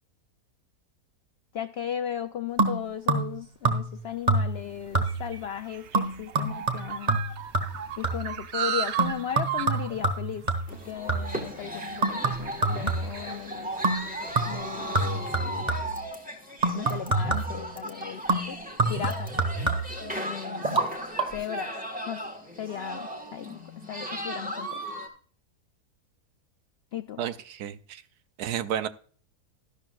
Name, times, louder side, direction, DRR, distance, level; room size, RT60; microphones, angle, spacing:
voice 1, 1.5-7.2 8.0-10.5 10.8-13.7 14.5-15.9 16.7-18.6 18.9-19.3 20.0-20.8 21.3-21.7 22.1-22.2 22.6-23.6 23.9-25.0 26.9-27.2, left 9 dB, 80° left, 10 dB, 0.5 m, -36 dB
sound 1, 2.6-3.4 3.6-4.0 4.3-4.7 4.9-5.4 5.9-8.4 9.0-11.4 12.0-13.3 13.8-14.1 14.3-16.0 16.6-17.6 18.3-20.1 20.6-20.9 21.2-21.3, right 3 dB, 30° right, 1.5 m, -27 dB
sound 2, 4.3-14.9, right 9 dB, 55° right, 0.8 m, -37 dB
sound 3, 10.7-25.1, equal, 5° right, 1.4 m, -37 dB
voice 2, 27.2-28.0 28.4-28.9, right 9 dB, 75° right, 13 dB, 1.2 m, -31 dB
13.0 x 12.0 x 2.4 m, 0.44 s
omnidirectional pair, 1.7 m